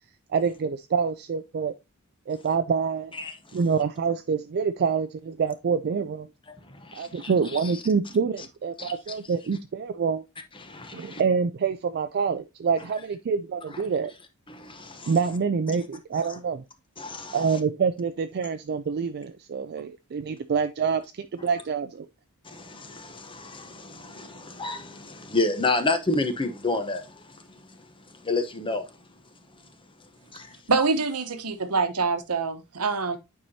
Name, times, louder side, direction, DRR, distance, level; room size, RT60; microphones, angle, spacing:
voice 1, 0.3-1.7 2.3-3.1 3.5-6.3 6.9-10.2 10.9-14.1 15.1-16.6 17.3-22.1, right 5 dB, 45° right, 0.4 m, -26 dB
voice 2, 6.8-7.3 8.8-8.9 10.6-11.2 14.5-15.1 17.0-17.4 22.4-27.0 28.2-28.8 30.3-30.5, left 3 dB, 25° left, 0.9 m, -29 dB
voice 3, 30.7-33.2, right 4 dB, 80° right, 1.1 m, -25 dB
8.8 x 4.7 x 2.8 m
head